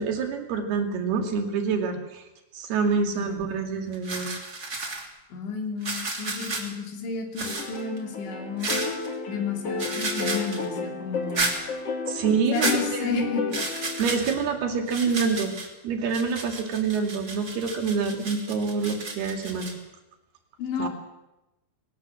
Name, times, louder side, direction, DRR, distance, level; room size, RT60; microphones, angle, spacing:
voice 1, 0.0-2.2 2.5-4.4 12.1-13.3 14.0-15.5 15.8-19.8 20.8-20.9, right 5 dB, 65° right, 4 dB, 4.3 m, -27 dB
voice 2, 3.1-3.6 5.3-8.8 9.3-11.5 12.5-13.6 15.1-15.2 20.6-20.9, left 6 dB, 90° left, 2 dB, 5.5 m, -32 dB
sound 1, 3.4-3.6 3.9-5.1 5.8-6.7 7.4-8.0 8.6-9.1 9.8-10.7 11.3-11.6 12.5-12.8 13.5-14.4 14.9-15.7 16.1-19.7, right 3 dB, 25° right, 2.9 m, -32 dB
sound 2, 7.4-14.0, left 4 dB, 40° left, 2.7 m, -32 dB
21.5 x 18.5 x 7.8 m, 0.97 s
omnidirectional pair, 5.0 m